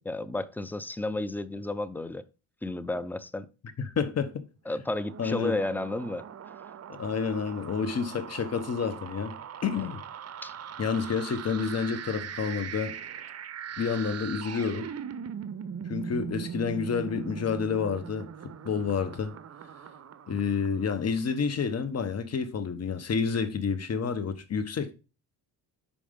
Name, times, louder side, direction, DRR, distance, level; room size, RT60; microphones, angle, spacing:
voice 1, 0.0-2.2 2.6-3.5 4.7-6.3 10.4-10.5, left 2 dB, 5° left, 0.4 m, -32 dB
voice 2, 3.8-4.3 5.2-5.6 6.9-10.0 10.8-13.0 13.8-14.9 15.9-18.3 18.6-19.3 20.3-24.9, left 6 dB, 35° left, 1.0 m, -29 dB
sound 1, 4.8-21.2, right 8 dB, 35° right, 0.7 m, -40 dB
5.1 x 5.1 x 5.0 m
supercardioid pair, 70°, 42 cm